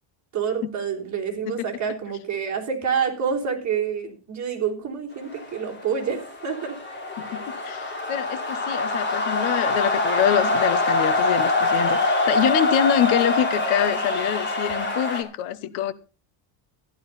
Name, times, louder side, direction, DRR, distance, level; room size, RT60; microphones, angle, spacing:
voice 1, 0.3-6.8, right 7 dB, 35° right, 3.5 m, -27 dB
sound 1, 5.3-15.2, left 2 dB, 20° left, 2.9 m, -24 dB
voice 2, 7.2-15.9, left 11 dB, 75° left, 1.1 m, -25 dB
14.0 x 11.5 x 4.1 m
cardioid pair, 165°, 49 cm